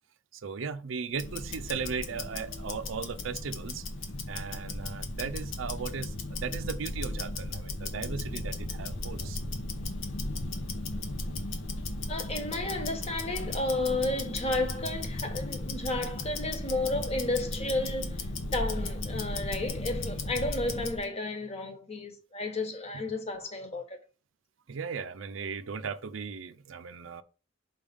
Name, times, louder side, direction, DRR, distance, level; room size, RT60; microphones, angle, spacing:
voice 1, 0.3-3.9 4.3-9.4 24.7-27.2, right 5 dB, 80° right, 0.5 m, -37 dB
Tick-tock, 1.1-21.0, left 2 dB, 85° left, 1.1 m, -36 dB
voice 2, 12.1-24.0, left 2 dB, 35° left, 1.2 m, -32 dB
5.4 x 3.5 x 5.2 m
head